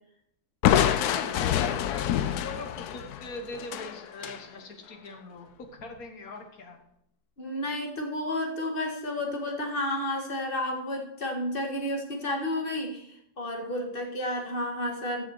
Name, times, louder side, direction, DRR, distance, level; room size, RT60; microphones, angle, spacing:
Crushing, 0.6-4.4, left 10 dB, 70° left, 1.0 m, -26 dB
voice 1, 0.9-6.8, left 2 dB, 55° left, 5 dB, 1.6 m, -41 dB
voice 2, 7.4-15.2, left 1 dB, 30° left, 2 dB, 1.8 m, -31 dB
14.5 x 5.9 x 4.7 m, 0.75 s
omnidirectional pair, 1.9 m